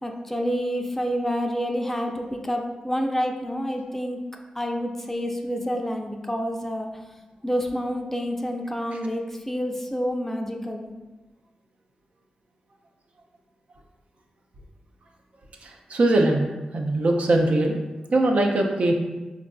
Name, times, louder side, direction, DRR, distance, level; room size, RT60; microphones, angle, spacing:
voice 1, 0.0-4.2 4.6-6.9 7.4-10.9, equal, 10° left, 3 dB, 0.4 m, -28 dB
voice 2, 15.6-16.5 16.7-17.8 18.1-18.9, right 2 dB, 65° right, 2 dB, 0.4 m, -21 dB
4.1 x 2.4 x 2.3 m, 1.2 s
cardioid pair, 45°, 2 cm